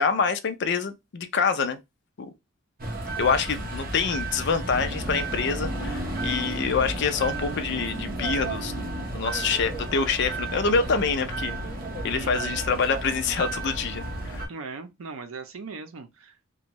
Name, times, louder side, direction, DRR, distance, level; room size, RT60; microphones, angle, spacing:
voice 1, 0.0-1.8 3.2-8.9 9.1-11.6 12.0-14.5, left 5 dB, 55° left, 0.4 m, -26 dB
sound 1, 2.8-14.5, right 2 dB, 45° right, 0.8 m, -32 dB
voice 2, 12.1-12.6 14.5-16.5, right 4 dB, 80° right, 0.6 m, -39 dB
2.6 x 2.2 x 2.9 m
head